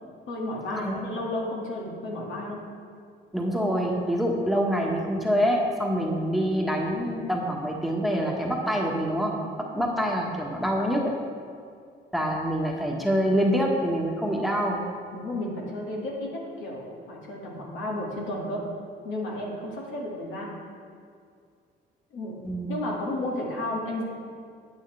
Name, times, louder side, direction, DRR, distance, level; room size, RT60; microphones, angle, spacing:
voice 1, 0.3-2.6 15.1-18.6 19.0-20.5 22.1-22.3 22.7-24.0, left 1 dB, 80° left, -3 dB, 2.0 m, -32 dB
voice 2, 3.3-11.1 12.1-14.8 22.4-22.7, equal, ahead, -1 dB, 1.4 m, -26 dB
9.4 x 8.4 x 3.3 m, 2.3 s
cardioid pair, 90°, 20 cm